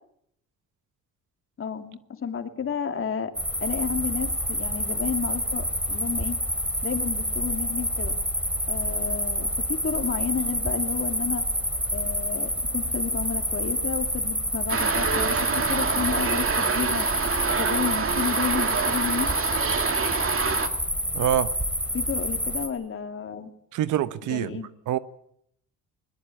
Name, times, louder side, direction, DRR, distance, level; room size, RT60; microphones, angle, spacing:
voice 1, 1.6-3.3 3.6-6.4 6.8-8.1 8.7-11.5 11.9-17.1 17.5-19.3 21.9-23.5 24.2-24.7, left 7 dB, 45° left, 2.8 m, -31 dB
sound 1, 3.3-22.7, equal, 5° right, 4.6 m, -28 dB
sound 2, 14.7-20.7, right 5 dB, 45° right, 2.4 m, -26 dB
voice 2, 21.1-21.5 23.7-24.6 24.9-25.0, right 12 dB, 80° right, 1.1 m, -25 dB
21.0 x 20.5 x 8.6 m
cardioid pair, 90°, 30 cm